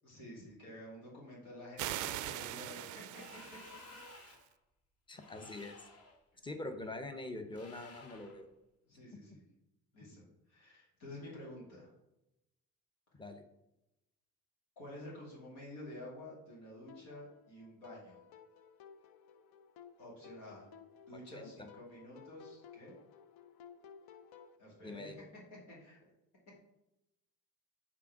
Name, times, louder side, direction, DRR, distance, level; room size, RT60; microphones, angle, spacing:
voice 1, 0.0-3.4 8.9-9.4 9.9-11.9 14.8-18.2 20.0-20.7 21.1-22.9 24.6-26.1, left 1 dB, 65° left, -4 dB, 2.5 m, -50 dB
sound 1, 1.8-4.4, right 13 dB, 45° right, 0.5 m, -42 dB
sound 2, 3.1-4.5 5.1-6.2 7.5-8.4, left 3 dB, 30° left, 1.2 m, -55 dB
voice 2, 5.1-5.9 6.4-8.5 13.2-13.4 21.1-21.7 24.8-25.2, left 2 dB, 10° left, 7 dB, 0.8 m, -44 dB
sound 3, 16.9-24.6, left 7 dB, 50° left, 0.6 m, -57 dB
6.0 x 3.7 x 6.0 m, 0.91 s
figure-of-eight pair, 50°, 46 cm